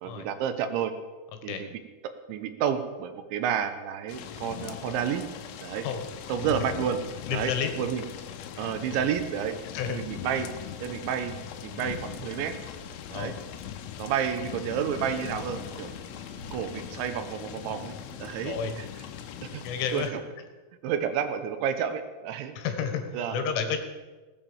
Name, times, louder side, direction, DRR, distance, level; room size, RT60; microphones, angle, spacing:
voice 1, 0.0-0.9 1.4-1.7 2.3-5.3 5.6-5.9 6.3-7.0 7.3-7.5 7.8-8.0 8.6-9.6 9.9-10.5 10.8-11.4 11.6-12.6 13.1-13.3 14.0-15.9 16.5-17.9 18.2-18.9 19.4-19.6 19.9-20.2 20.8-22.5 23.1-23.4, right 8 dB, 75° right, 9 dB, 3.1 m, -30 dB
sound 1, 4.1-20.1, left 10 dB, 90° left, 3.6 m, -40 dB
voice 2, 7.3-7.7 9.7-10.0 13.1-13.4 18.4-18.7 19.6-20.2 22.6-23.8, left 7 dB, 75° left, 6 dB, 3.9 m, -30 dB
sound 2, 9.7-17.4, left 3 dB, 45° left, 4.6 m, -51 dB
Bowed string instrument, 14.7-20.3, left 1 dB, 25° right, 3.2 m, -55 dB
18.5 x 9.0 x 7.2 m, 1.3 s
omnidirectional pair, 5.8 m